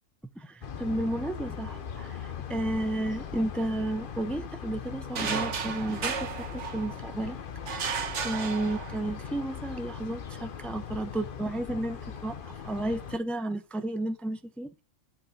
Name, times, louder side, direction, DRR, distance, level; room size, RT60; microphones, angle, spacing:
voice 1, 0.4-7.4 8.2-14.7, right 1 dB, ahead, 0.6 m, -32 dB
sound 1, 0.6-13.2, left 7 dB, 45° left, 0.9 m, -40 dB
sound 2, 5.2-7.1 7.7-9.2, right 6 dB, 60° right, 1.4 m, -33 dB
8.6 x 4.8 x 7.5 m
omnidirectional pair, 1.4 m